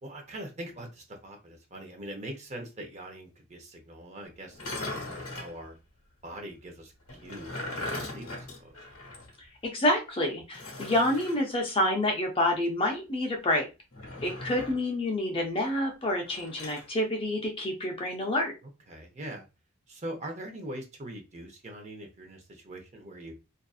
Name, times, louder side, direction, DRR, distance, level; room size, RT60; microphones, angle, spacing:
voice 1, 0.0-5.7 6.2-8.7 18.9-19.4 19.9-23.3, right 1 dB, 30° right, 2 dB, 0.6 m, -42 dB
sound 1, 4.5-5.6 7.1-9.3 9.6-9.7 10.5-11.4 13.9-14.9 16.2-16.9, left 2 dB, 85° left, 0.9 m, -39 dB
voice 2, 9.6-13.7 14.2-18.5, left 1 dB, 25° left, 2 dB, 0.4 m, -28 dB
2.5 x 2.4 x 2.3 m, 0.28 s
head